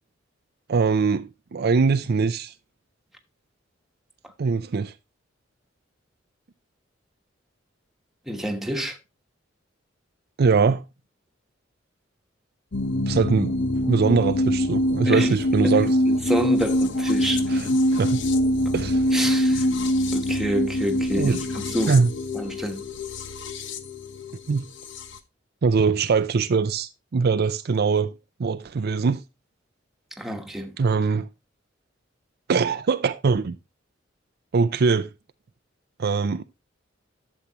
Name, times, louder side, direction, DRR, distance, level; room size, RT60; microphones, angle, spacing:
voice 1, 0.7-2.5 4.4-4.9 10.4-10.8 13.1-13.6 13.9-16.0 17.5-18.2 18.7-19.2 21.2-21.4 21.9-22.1 24.5-24.7 25.6-28.1 28.4-29.2 30.8-31.3 32.5-33.6 34.5-35.1 36.0-36.4, right 4 dB, 55° right, 0.5 m, -22 dB
voice 2, 8.3-9.0 15.1-15.3 15.6-17.8 18.6-18.7 19.1-19.7 20.1-22.0 22.3-22.8 30.2-30.8, equal, ahead, 1.3 m, -28 dB
sound 1, 12.7-25.2, left 1 dB, 65° left, 0.9 m, -24 dB
11.5 x 7.4 x 2.9 m
head